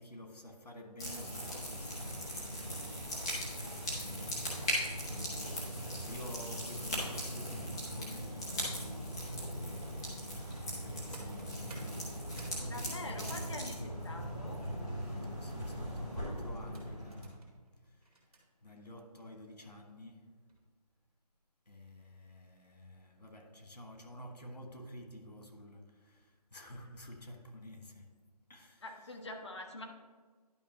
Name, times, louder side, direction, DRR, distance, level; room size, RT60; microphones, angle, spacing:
voice 1, 0.0-2.9 4.4-5.4 5.7-8.9 10.2-13.4 15.4-17.5 17.8-18.1 18.6-20.3 21.7-28.2 28.5-28.8, left 1 dB, 90° left, 1.8 m, -51 dB
sound 1, 1.0-17.3, equal, 10° left, 0.8 m, -39 dB
sound 2, 9.7-13.5 16.0-18.4 19.2-19.3 19.7-19.9 20.3-20.6 20.9-21.0, right 2 dB, 60° right, 2.4 m, -55 dB
voice 2, 12.6-14.6 28.8-29.8, left 2 dB, 45° left, 1.1 m, -45 dB
11.0 x 5.5 x 3.0 m
figure-of-eight pair, 165°, 21 cm